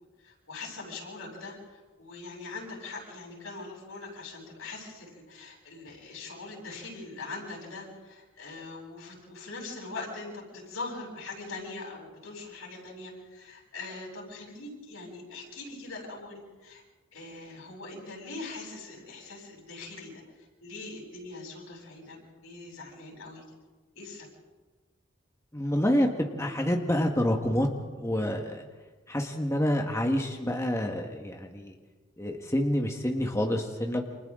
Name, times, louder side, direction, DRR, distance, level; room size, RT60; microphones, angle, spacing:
voice 1, 0.2-16.8 17.1-20.2 20.6-23.4 23.9-24.3, left 3 dB, 90° left, -1 dB, 8.0 m, -42 dB
voice 2, 25.5-27.7 28.0-28.6 29.1-31.7 32.2-34.0, equal, 15° left, 2 dB, 1.6 m, -27 dB
29.5 x 27.0 x 3.8 m, 1.3 s
head